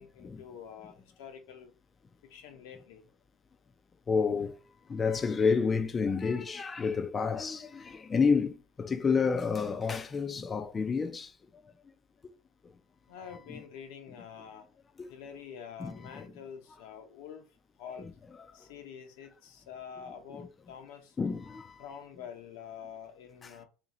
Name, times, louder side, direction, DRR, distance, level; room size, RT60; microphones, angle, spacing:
voice 1, 0.0-1.7 2.3-3.1 13.1-14.6 15.1-17.4 17.8-18.1 18.5-21.2 21.8-23.6, left 7 dB, 85° left, 0.8 m, -47 dB
voice 2, 4.1-4.6 4.9-11.4 12.6-12.7 13.5-13.6 15.0-15.1 15.8-16.3 18.4-18.7 21.2-21.8 23.4-23.6, left 5 dB, 25° left, 0.3 m, -30 dB
2.8 x 2.7 x 4.1 m
supercardioid pair, 120°, 0 cm